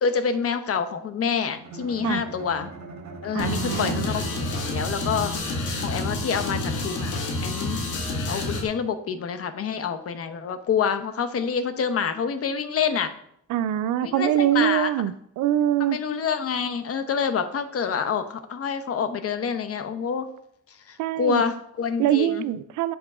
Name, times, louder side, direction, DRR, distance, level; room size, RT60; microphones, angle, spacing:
voice 1, 0.0-2.7 3.2-7.8 8.3-13.1 14.0-14.9 15.8-20.3 20.9-22.4, left 6 dB, 50° left, 9 dB, 0.8 m, -27 dB
Bowed string instrument, 1.5-5.8, right 3 dB, 65° right, 1.4 m, -41 dB
voice 2, 3.3-4.1 13.5-16.0 21.0-21.4 22.0-23.0, right 12 dB, 80° right, 15 dB, 0.4 m, -24 dB
sound 1, 3.4-8.6, left 2 dB, 80° left, 1.7 m, -29 dB
7.9 x 3.7 x 4.9 m, 0.71 s
cardioid pair, 90°, 30 cm